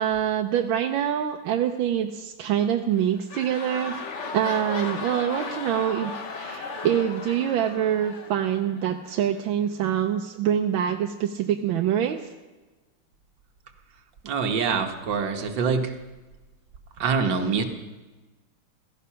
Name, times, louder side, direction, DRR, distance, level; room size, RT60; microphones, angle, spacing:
voice 1, 0.0-4.0 4.3-12.2, right 9 dB, 85° right, 5 dB, 1.5 m, -25 dB
sound 1, 2.8-9.2 9.9-10.0, left 4 dB, 45° left, 1.2 m, -36 dB
voice 2, 14.2-15.9 17.0-17.6, right 5 dB, 70° right, 4 dB, 1.9 m, -25 dB
16.0 x 15.0 x 5.7 m, 1.2 s
omnidirectional pair, 2.1 m